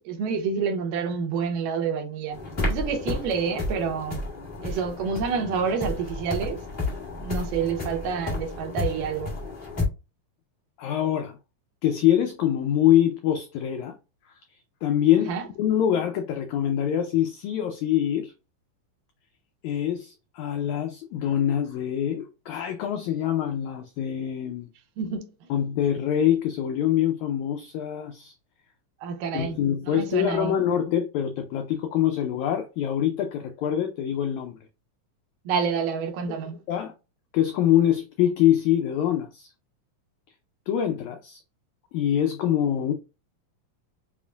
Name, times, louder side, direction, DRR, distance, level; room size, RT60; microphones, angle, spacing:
voice 1, 0.0-2.4 2.7-4.2 4.6-6.6 7.2-9.4 15.3-15.4 25.0-25.3 29.0-29.6 29.9-30.6 35.5-36.6, right 6 dB, 80° right, 2.3 m, -28 dB
sound 1, 2.3-9.8, left 2 dB, 25° left, 1.1 m, -32 dB
voice 2, 10.8-11.4 11.8-14.0 14.3-14.4 14.8-18.3 19.6-24.7 25.5-28.3 29.3-34.6 36.3-36.4 36.7-36.9 37.3-39.5 40.7-41.4 41.9-42.9, left 10 dB, 90° left, 1.6 m, -24 dB
7.0 x 2.5 x 2.2 m
omnidirectional pair, 3.9 m